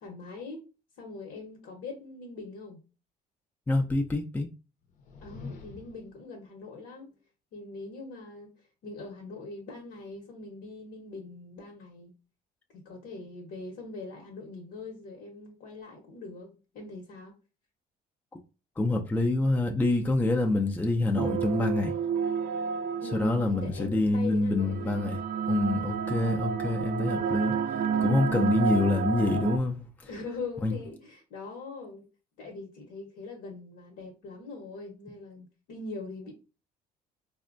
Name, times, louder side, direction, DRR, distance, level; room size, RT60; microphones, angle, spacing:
voice 1, 0.0-0.6 1.0-2.8 5.2-7.1 7.5-12.1 12.7-17.3 23.0-25.1 28.6-29.0 30.1-32.1 32.4-36.3, left 3 dB, 80° left, 1.0 m, -42 dB
voice 2, 3.7-4.5 18.8-21.9 23.1-25.2 25.5-27.6 28.0-30.1 30.6-30.7, left 2 dB, 10° left, 0.4 m, -26 dB
sound 1, 4.8-6.2, left 4 dB, 50° left, 0.7 m, -45 dB
sound 2, 21.2-23.7 24.6-29.6, right 7 dB, 60° right, 0.4 m, -30 dB
4.1 x 2.2 x 2.5 m
cardioid pair, 110°, 17 cm